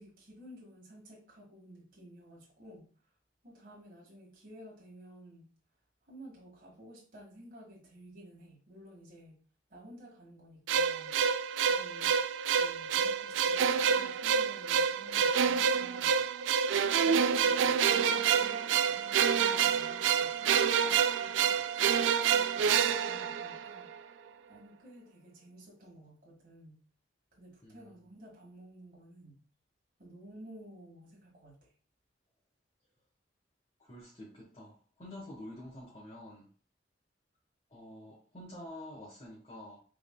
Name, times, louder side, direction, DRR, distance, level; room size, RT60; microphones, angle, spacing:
voice 1, 0.0-2.9 3.4-5.5 6.1-9.4 9.7-16.3 16.8-24.2 24.5-26.8 27.3-29.4 30.0-31.7, equal, 50° right, -3 dB, 1.7 m, -53 dB
sound 1, 10.7-23.9, right 7 dB, 90° right, 0.3 m, -28 dB
voice 2, 33.8-36.5 37.7-39.8, left 1 dB, 30° left, -4 dB, 1.1 m, -48 dB
5.2 x 3.7 x 2.2 m, 0.41 s
head